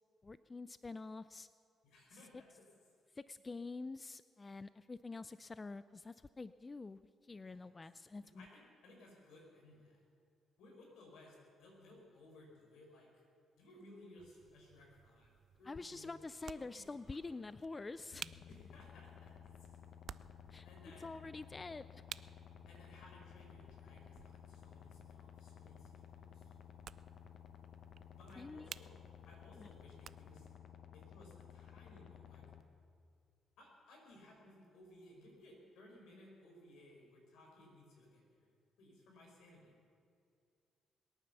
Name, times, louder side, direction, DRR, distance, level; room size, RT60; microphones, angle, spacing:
voice 1, 0.2-1.5 3.1-8.5 15.7-18.3 20.5-20.7 21.0-22.0 28.4-28.7 29.6-29.7, left 3 dB, 25° left, 15 dB, 0.4 m, -47 dB
voice 2, 1.8-2.6 7.4-7.7 8.3-10.0 10.6-13.2 13.6-15.3 15.6-16.1 16.5-17.3 18.5-19.7 20.6-21.2 22.7-26.5 28.1-29.0 29.2-30.5 30.9-32.5 33.6-39.8, left 1 dB, 80° left, 0 dB, 4.9 m, -60 dB
sound 1, 14.2-30.6, right 8 dB, 60° right, 0.4 m, -56 dB
sound 2, 18.1-32.6, left 9 dB, 60° left, 1.0 m, -56 dB
21.5 x 9.5 x 6.9 m, 2.4 s
cardioid pair, 90°, 0 cm